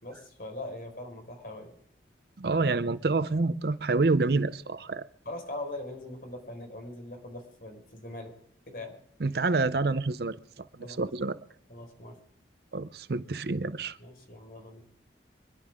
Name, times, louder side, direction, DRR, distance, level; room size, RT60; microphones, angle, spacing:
voice 1, 0.0-1.7 5.2-8.3 8.7-8.9 10.8-11.0 11.7-12.2 14.0-14.8, left 1 dB, 50° left, 4.8 m, -41 dB
voice 2, 2.4-5.1 9.2-10.4 11.0-11.4 12.7-14.0, right 3 dB, 60° right, 0.6 m, -27 dB
25.5 x 11.5 x 3.7 m
head